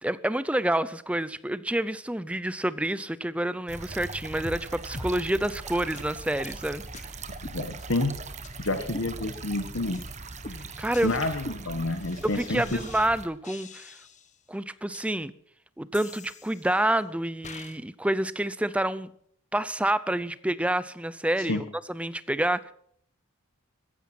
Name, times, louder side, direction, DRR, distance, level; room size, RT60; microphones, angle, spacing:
voice 1, 0.0-7.1 10.5-11.1 12.2-14.0 14.5-15.3 15.8-19.1 19.5-22.7, right 1 dB, 5° right, 0.5 m, -28 dB
sound 1, 3.7-13.3, right 3 dB, 35° right, 1.3 m, -40 dB
sound 2, 4.4-4.7 4.9-5.1 5.4-5.5 5.9-6.0 6.4-6.6 6.9-7.0 7.4-8.1 8.4-8.5 8.9-9.6 9.9-10.1 10.4-13.1 13.4-14.4 14.9-15.1 15.9-16.9 17.4-17.8, left 2 dB, 35° left, 1.3 m, -43 dB
voice 2, 7.5-8.1 8.6-10.0 11.0-12.6 21.4-21.6, left 2 dB, 65° left, 1.3 m, -29 dB
15.5 x 14.5 x 6.0 m
head